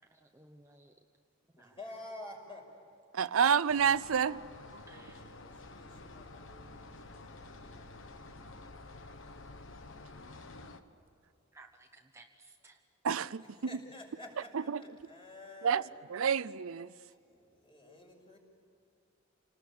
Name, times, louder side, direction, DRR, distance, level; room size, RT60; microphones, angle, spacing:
voice 1, 0.1-0.9 1.5-1.8 4.9-5.2 11.5-12.8, right 2 dB, 15° right, 0.8 m, -58 dB
voice 2, 1.5-2.7 4.7-8.0 13.4-15.9 17.0-18.4, left 1 dB, 25° left, 5.9 m, -51 dB
voice 3, 3.1-4.4 13.0-13.4 15.6-15.8 16.1-16.9, right 7 dB, 85° right, 0.5 m, -28 dB
sound 1, 3.7-10.8, left 2 dB, 65° left, 1.3 m, -50 dB
29.0 x 19.5 x 8.6 m
head